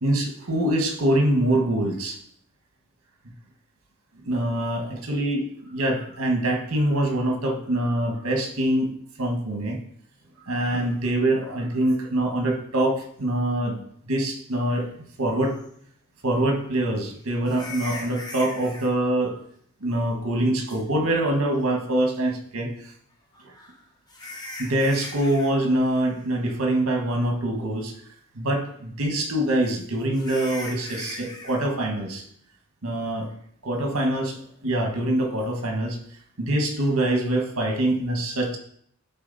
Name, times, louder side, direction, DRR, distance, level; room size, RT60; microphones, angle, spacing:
voice 1, 0.0-2.2 4.2-9.8 10.5-13.8 14.1-14.8 15.2-15.6 16.2-19.4 19.8-22.9 23.4-23.5 24.6-27.9 28.3-32.2 32.8-33.3 33.6-36.0 36.4-38.6, right 1 dB, 70° right, 2 dB, 1.5 m, -24 dB
sound 1, 15.6-15.7 17.4-18.9 20.7-20.8 23.3-25.5 25.8-26.1 26.5-26.6 27.2-27.3 30.1-31.6, left 2 dB, 15° left, 1.1 m, -39 dB
10.0 x 4.0 x 4.1 m, 0.65 s
head